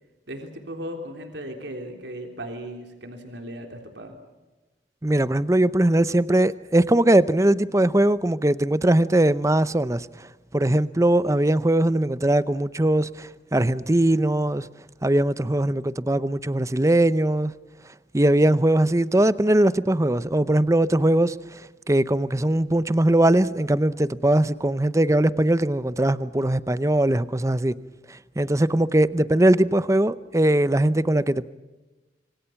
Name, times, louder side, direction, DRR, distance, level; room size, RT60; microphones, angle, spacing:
voice 1, 0.3-4.2, equal, 75° right, 3.6 m, -37 dB
voice 2, 5.0-14.7 15.0-17.5 18.1-21.6 21.9-27.7 28.1-31.5, right 1 dB, 15° right, 0.7 m, -20 dB
26.0 x 25.5 x 5.9 m
head